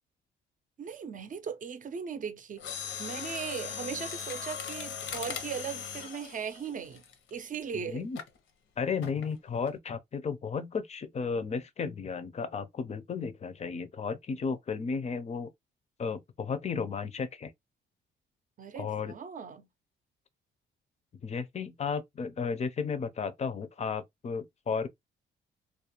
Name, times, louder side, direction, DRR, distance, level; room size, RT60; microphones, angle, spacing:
voice 1, 0.8-2.7 3.0-7.0 7.3-8.1 18.6-19.7, right 7 dB, 40° right, 0.5 m, -38 dB
Mechanisms, 2.6-7.6 8.1-8.4 9.0-9.3 9.7-9.8, left 7 dB, 75° left, 0.7 m, -39 dB
voice 2, 7.7-8.2 8.8-15.5 16.0-17.5 18.8-19.1 21.2-24.9, left 5 dB, 35° left, 0.5 m, -34 dB
2.4 x 2.2 x 2.9 m
cardioid pair, 90°, 20 cm